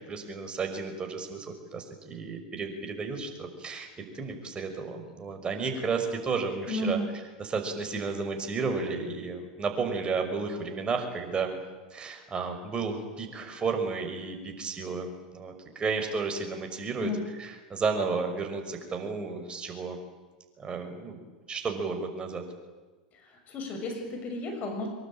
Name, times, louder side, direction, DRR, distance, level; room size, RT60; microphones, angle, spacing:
voice 1, 0.0-3.9 4.1-7.0 7.4-11.6 11.9-17.1 17.4-20.0 20.6-22.4, right 4 dB, 25° right, 5 dB, 5.9 m, -32 dB
voice 2, 6.7-7.1 17.0-17.2 23.1-24.9, left 1 dB, 40° left, 3 dB, 6.6 m, -33 dB
24.5 x 23.0 x 9.1 m, 1.3 s
hypercardioid pair, 90°, 4 cm